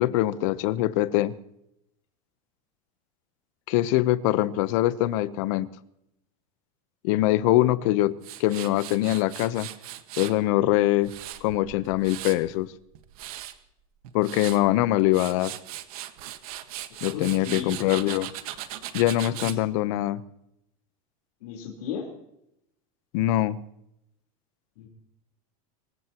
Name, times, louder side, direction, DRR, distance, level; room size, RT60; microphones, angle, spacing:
voice 1, 0.0-1.3 3.7-5.7 7.0-8.1 8.4-9.7 10.2-11.1 11.4-12.7 14.1-15.5 17.0-18.3 18.9-20.2 23.1-23.6, left 15 dB, 60° left, 15 dB, 1.0 m, -23 dB
Tools, 8.2-10.4 10.8-12.5 12.9-13.5 14.0-14.6 15.0-19.6, right 14 dB, 75° right, 1.6 m, -38 dB
voice 2, 16.9-17.8 19.4-19.5 21.4-22.1 24.8-24.9, left 7 dB, 85° left, -1 dB, 4.2 m, -35 dB
25.5 x 16.0 x 3.0 m, 0.80 s
supercardioid pair, 155°, 19 cm